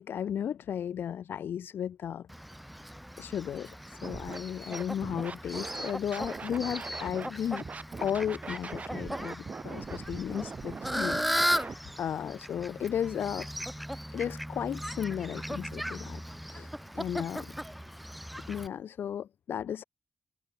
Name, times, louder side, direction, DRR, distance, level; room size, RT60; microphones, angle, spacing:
voice 1, 0.0-2.3 3.2-7.7 8.0-13.5 14.1-17.5 18.5-19.8, left 9 dB, 85° left, 3.8 m, -35 dB
Fowl, 2.3-18.7, equal, ahead, 4.0 m, -37 dB
Scratching (performance technique), 4.0-4.4 4.7-7.3 7.6-11.7, right 4 dB, 45° right, 5.7 m, -41 dB
cardioid pair, 100°, 4 cm